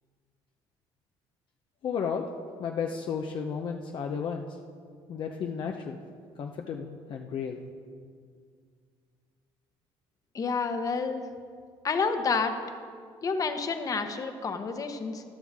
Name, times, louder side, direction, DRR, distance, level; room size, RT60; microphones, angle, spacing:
voice 1, 1.8-2.3 2.6-4.4 5.1-6.0 6.4-7.6, left 6 dB, 55° left, 3 dB, 0.7 m, -33 dB
voice 2, 10.3-11.2 11.8-12.5 13.2-15.2, left 4 dB, 35° left, 7 dB, 1.0 m, -29 dB
15.0 x 11.0 x 3.6 m, 2.1 s
cardioid pair, 105°, 10 cm